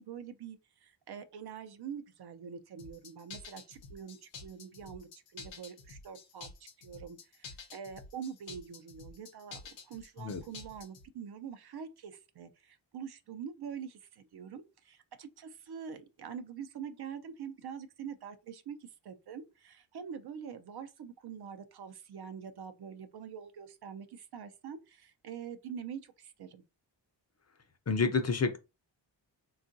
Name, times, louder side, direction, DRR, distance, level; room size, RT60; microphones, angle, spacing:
voice 1, 0.0-6.5 6.8-26.6, right 7 dB, 60° right, 0.5 m, -45 dB
sound 1, 2.8-11.1, left 4 dB, 75° left, 0.8 m, -49 dB
voice 2, 27.9-28.6, left 4 dB, 35° left, 0.5 m, -29 dB
3.6 x 2.4 x 2.6 m
wide cardioid pair, 115°, 45 cm